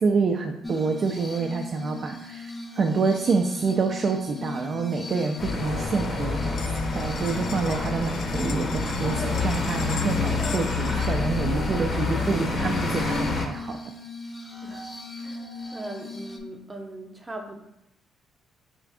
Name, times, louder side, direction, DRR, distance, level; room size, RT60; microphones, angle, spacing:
voice 1, 0.0-2.5 2.8-6.6 7.0-13.8, right 4 dB, 50° right, 3 dB, 0.4 m, -27 dB
Glass, 0.6-16.4, left 1 dB, 20° left, 0.5 m, -38 dB
sound 1, 5.2-5.7 6.0-6.1 6.3-11.1, left 6 dB, 80° left, 0.4 m, -41 dB
sound 2, 5.4-13.5, left 3 dB, 50° left, 0.7 m, -27 dB
voice 2, 15.7-17.6, right 1 dB, 20° right, 2 dB, 0.7 m, -39 dB
4.4 x 2.4 x 3.4 m, 0.86 s
cardioid pair, 90°, 0 cm